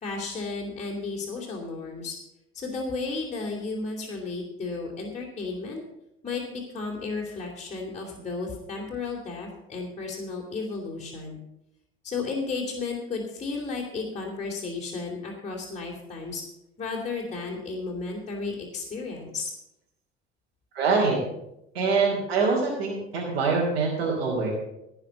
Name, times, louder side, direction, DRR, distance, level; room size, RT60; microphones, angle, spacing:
voice 1, 0.0-2.2 2.5-5.8 6.2-11.4 12.0-16.4 16.8-19.5, left 3 dB, 25° left, -4 dB, 3.0 m, -33 dB
voice 2, 20.7-21.2 21.7-24.5, right 4 dB, 75° right, -4 dB, 3.2 m, -24 dB
17.0 x 5.7 x 7.0 m, 0.86 s
hypercardioid pair, 65°, 30 cm